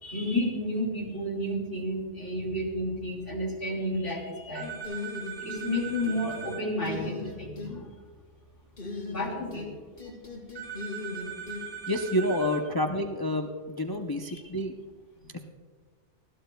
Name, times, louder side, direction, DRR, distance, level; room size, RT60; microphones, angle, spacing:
voice 1, 0.0-4.8 5.4-7.9 9.1-9.7 15.2-15.3, left 1 dB, 75° left, -2 dB, 3.5 m, -31 dB
sound 1, 4.5-6.6 10.6-12.6, right 8 dB, 60° right, 3.9 m, -40 dB
sound 2, 4.8-5.7 6.0-6.5 6.8-7.7 8.8-9.7 10.0-11.6, left 3 dB, 45° left, 4.4 m, -38 dB
voice 2, 11.9-14.7, left 1 dB, 25° left, 3 dB, 0.5 m, -28 dB
20.0 x 15.0 x 2.3 m, 1.5 s
omnidirectional pair, 1.2 m